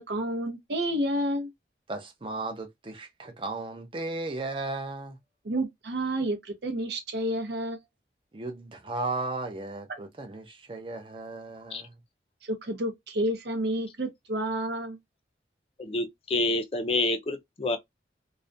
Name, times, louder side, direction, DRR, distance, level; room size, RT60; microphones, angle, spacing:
voice 1, 0.0-1.5 5.5-7.8 12.4-15.0, right 1 dB, 70° right, 0.6 m, -30 dB
voice 2, 1.9-5.2 8.3-12.0, right 2 dB, 30° right, 0.5 m, -35 dB
voice 3, 15.8-17.8, left 2 dB, 30° left, 0.4 m, -28 dB
2.3 x 2.1 x 2.5 m
head